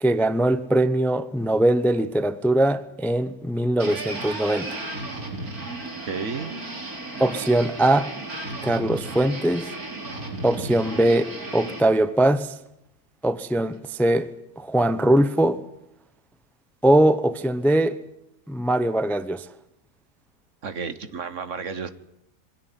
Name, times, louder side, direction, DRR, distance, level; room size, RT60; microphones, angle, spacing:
voice 1, 0.0-4.7 7.2-8.1 8.6-9.7 10.4-12.5 13.2-14.3 14.6-15.6 16.8-18.0 18.5-19.5, right 1 dB, ahead, 0.6 m, -21 dB
sound 1, 3.8-11.8, right 2 dB, 85° right, 4.0 m, -34 dB
voice 2, 6.0-6.6 20.6-21.9, right 5 dB, 60° right, 1.6 m, -32 dB
24.0 x 17.0 x 10.0 m
omnidirectional pair, 1.5 m